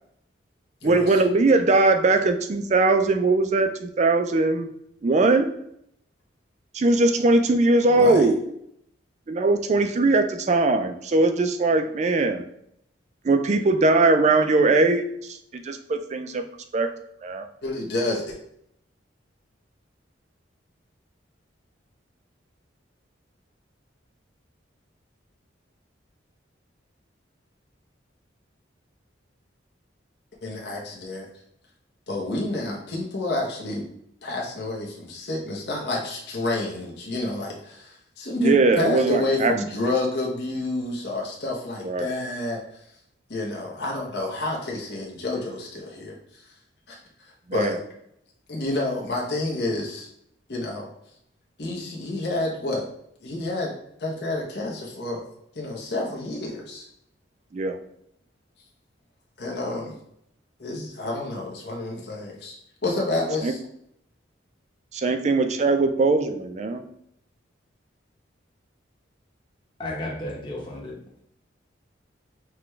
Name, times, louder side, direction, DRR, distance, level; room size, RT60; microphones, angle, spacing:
voice 1, 0.8-4.7 5.0-5.5 6.7-8.4 9.3-12.4 13.2-16.4 16.7-16.9 17.2-17.5 38.4-39.5 41.8-42.1 47.5-47.8 57.5-57.8 63.4-63.5 64.9-66.8, right 3 dB, 35° right, 8 dB, 0.3 m, -20 dB
voice 2, 7.9-8.3 17.6-18.3 30.4-31.2 32.1-33.9 34.2-42.6 43.3-46.4 46.9-47.8 48.5-50.1 50.5-50.9 51.6-52.9 53.2-53.7 54.0-55.2 55.5-56.8 59.4-59.9 60.6-62.6 62.8-63.6, left 2 dB, 55° left, -3 dB, 0.9 m, -29 dB
voice 3, 69.8-71.0, left 1 dB, 25° left, -4 dB, 1.0 m, -33 dB
6.0 x 2.3 x 3.1 m, 0.74 s
head